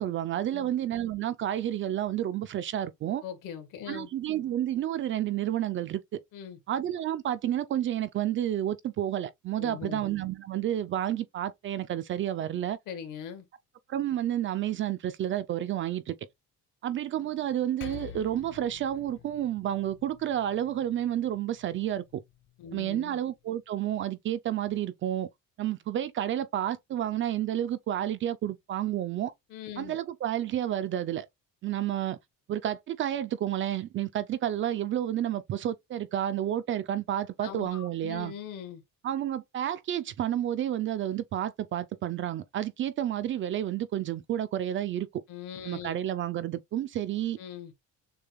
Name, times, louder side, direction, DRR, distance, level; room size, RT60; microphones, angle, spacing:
voice 1, 0.0-3.2 3.9-6.2 6.7-12.8 13.9-16.1 16.8-22.2 22.7-25.3 25.6-29.3 29.8-31.3 31.6-32.2 32.5-38.3 39.0-45.2 45.7-47.4, right 11 dB, 40° right, 0.4 m, -30 dB
voice 2, 3.2-4.1 6.3-6.6 9.6-10.0 12.9-13.4 22.6-23.2 29.5-30.0 37.4-38.8 45.3-46.0 47.4-47.7, left 8 dB, 70° left, 1.6 m, -41 dB
Percussion, 17.8-22.6, left 8 dB, 35° left, 0.6 m, -48 dB
6.7 x 2.2 x 3.4 m
cardioid pair, 175°, 32 cm